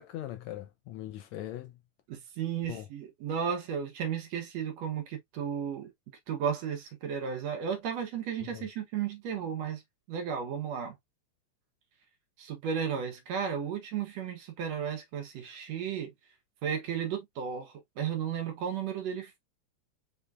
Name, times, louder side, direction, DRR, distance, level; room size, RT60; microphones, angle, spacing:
voice 1, 0.0-1.7 2.7-2.9 8.4-8.7, left 13 dB, 75° left, 1.7 m, -40 dB
voice 2, 2.1-5.9 6.3-9.8 10.1-11.0 12.4-16.1 16.6-19.4, right 7 dB, 65° right, 2.0 m, -34 dB
5.6 x 3.8 x 2.4 m
omnidirectional pair, 3.5 m